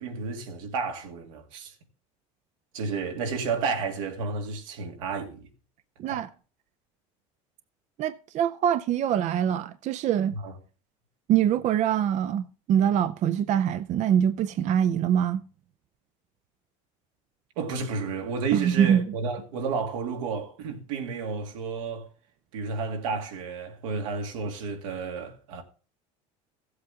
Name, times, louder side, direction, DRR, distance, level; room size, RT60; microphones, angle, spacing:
voice 1, 0.0-1.7 2.7-5.5 6.1-6.3 10.3-10.6 17.6-22.1 22.5-25.6, right 5 dB, 90° right, 2.1 m, -31 dB
voice 2, 8.0-10.4 11.3-15.4 18.5-19.1, right 9 dB, 45° right, 0.5 m, -24 dB
15.0 x 7.9 x 3.6 m
supercardioid pair, 105°, 16 cm